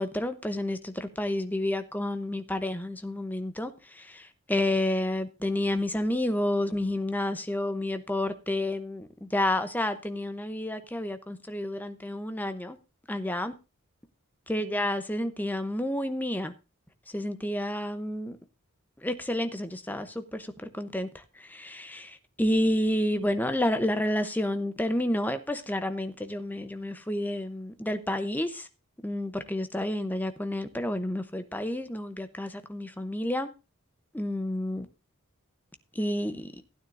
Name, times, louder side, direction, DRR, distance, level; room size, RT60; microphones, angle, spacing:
voice 1, 0.0-12.8 13.1-13.5 14.5-16.5 17.1-18.4 19.0-28.7 29.0-33.5 34.1-34.9 35.9-36.6, left 1 dB, 10° left, 0.7 m, -30 dB
15.5 x 9.5 x 2.6 m
head